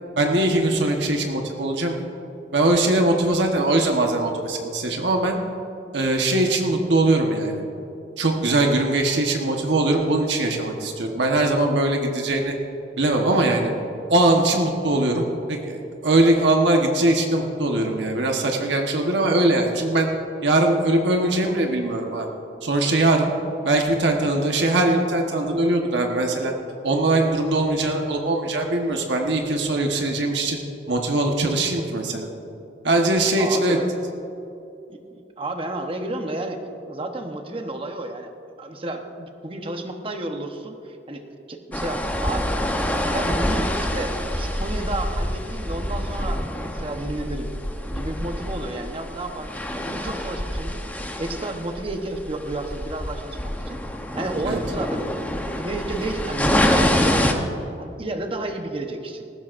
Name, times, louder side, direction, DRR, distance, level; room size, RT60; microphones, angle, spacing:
voice 1, 0.2-2.0 2.5-5.4 5.9-7.6 8.2-12.5 13.0-13.7 14.1-15.8 16.0-20.1 20.4-22.3 22.6-23.3 23.6-26.5 26.8-30.6 30.9-32.3 32.8-33.8 54.5-54.6, right 2 dB, 85° right, 2 dB, 1.2 m, -21 dB
voice 2, 33.4-33.9 34.9-36.6 36.9-38.3 38.6-42.5 43.0-47.5 47.9-50.8 51.2-53.8 54.1-59.3, right 2 dB, 30° right, 5 dB, 1.0 m, -31 dB
sound 1, 41.7-57.3, left 1 dB, 10° left, 0.8 m, -26 dB
19.0 x 15.0 x 2.6 m, 2.8 s
head